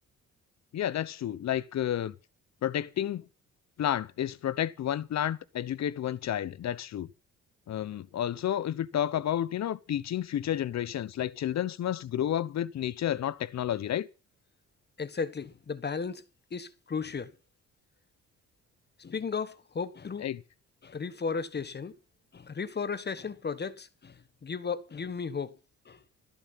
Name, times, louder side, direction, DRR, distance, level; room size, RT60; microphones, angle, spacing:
voice 1, 0.7-2.1 2.6-3.2 3.8-7.1 7.7-14.1 20.2-20.4, left 11 dB, 60° left, 1.1 m, -31 dB
voice 2, 15.0-16.2 16.5-17.3 19.0-20.3 20.8-21.9 22.3-25.5 25.8-26.0, left 5 dB, 35° left, 1.4 m, -35 dB
14.5 x 13.0 x 5.8 m
cardioid pair, 90°, 30 cm